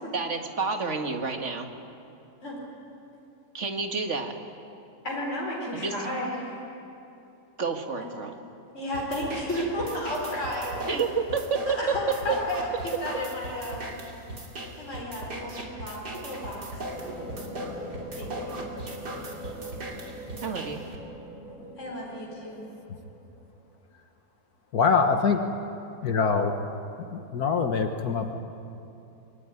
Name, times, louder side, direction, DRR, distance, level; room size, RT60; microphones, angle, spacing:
voice 1, 0.1-1.7 3.5-4.4 5.7-6.0 7.6-8.3 10.9-12.4 20.4-20.9, right 5 dB, 45° right, 4 dB, 2.1 m, -29 dB
voice 2, 5.0-6.5 8.0-8.1 8.7-10.9 11.6-12.7 13.0-13.9 14.8-16.8 18.2-18.7 21.8-22.6, left 1 dB, 45° left, -4 dB, 5.1 m, -33 dB
sound 1, 8.9-21.0, right 1 dB, 90° right, 3.6 m, -39 dB
sound 2, 16.9-23.6, right 1 dB, ahead, 4.4 m, -42 dB
voice 3, 24.7-25.4 26.0-26.5 27.1-28.3, left 5 dB, 70° left, 5 dB, 1.8 m, -24 dB
26.5 x 22.5 x 9.8 m, 2.8 s
omnidirectional pair, 1.7 m